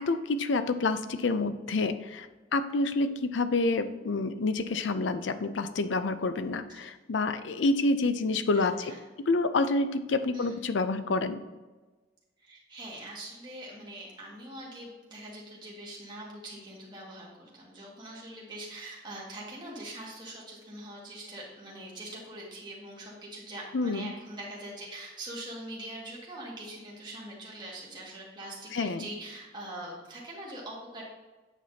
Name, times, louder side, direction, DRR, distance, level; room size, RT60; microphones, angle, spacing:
voice 1, 0.0-8.9 9.3-11.4 23.7-24.1 28.7-29.1, left 3 dB, 85° left, 11 dB, 0.5 m, -28 dB
voice 2, 8.5-9.0 10.3-10.6 12.4-31.0, right 1 dB, 25° right, -4 dB, 1.9 m, -43 dB
9.1 x 6.0 x 2.8 m, 1.2 s
head